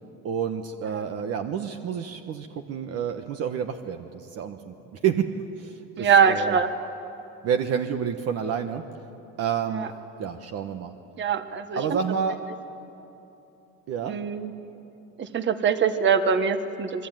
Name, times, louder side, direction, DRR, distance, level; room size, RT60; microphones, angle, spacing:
voice 1, 0.2-4.7 5.0-5.3 5.6-6.6 7.4-8.8 9.4-9.9 10.2-10.9 11.8-12.4 13.9-14.2, right 7 dB, 55° right, 6 dB, 1.3 m, -29 dB
voice 2, 6.0-6.7 9.7-9.9 11.2-12.0 14.0-14.5 15.2-17.1, right 6 dB, 40° right, 10 dB, 1.5 m, -23 dB
27.0 x 22.5 x 9.2 m, 2.9 s
cardioid pair, 125°, 29 cm